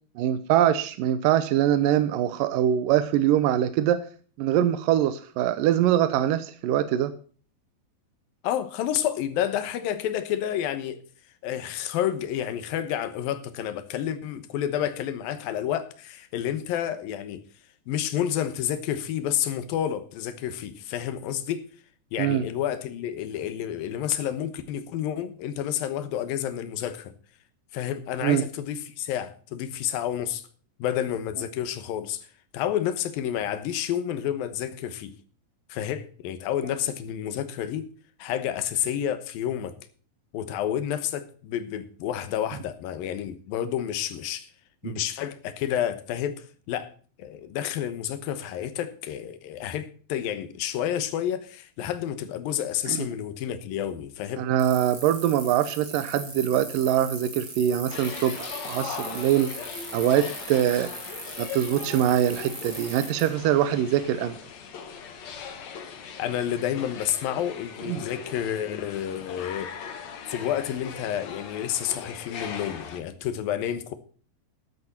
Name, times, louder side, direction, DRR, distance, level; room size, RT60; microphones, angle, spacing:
voice 1, 0.2-4.0 4.4-7.1 22.2-22.4 28.2-28.4 44.8-45.0 52.9-53.0 54.4-59.5 59.9-60.9 61.4-64.4 67.9-68.0, right 11 dB, 75° right, 2.3 m, -23 dB
voice 2, 8.4-11.0 11.4-17.4 17.9-21.6 22.1-27.1 27.7-30.4 30.8-32.3 32.5-35.1 35.7-37.9 38.2-39.7 40.3-44.5 44.8-46.9 47.2-54.4 66.2-69.7 70.3-73.9, left 10 dB, 80° left, 2.9 m, -30 dB
sound 1, 54.6-63.2, right 3 dB, 35° right, 4.9 m, -39 dB
sound 2, 57.9-73.0, left 6 dB, 55° left, 2.5 m, -39 dB
13.5 x 11.0 x 4.3 m
omnidirectional pair, 4.1 m